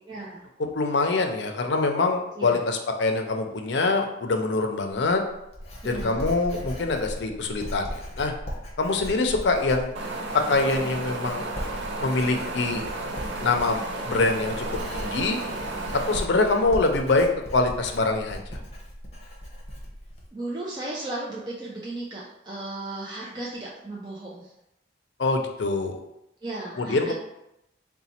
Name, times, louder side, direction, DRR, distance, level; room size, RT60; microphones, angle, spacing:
voice 1, 0.1-0.5 2.4-2.6 5.8-6.3 20.3-24.5 26.4-27.1, right 2 dB, 25° right, -5 dB, 0.5 m, -35 dB
voice 2, 0.7-5.2 5.8-8.3 8.8-10.0 10.5-11.5 12.0-12.8 13.4-13.8 14.0-15.4 16.1-17.3 17.5-18.6 25.2-26.0 26.8-27.1, left 3 dB, 70° left, 5 dB, 0.5 m, -24 dB
Writing, 5.0-20.3, equal, 35° left, 0.7 m, -38 dB
Wind, 10.0-16.2, right 2 dB, 90° right, 0.6 m, -33 dB
4.0 x 2.2 x 4.2 m, 0.85 s
head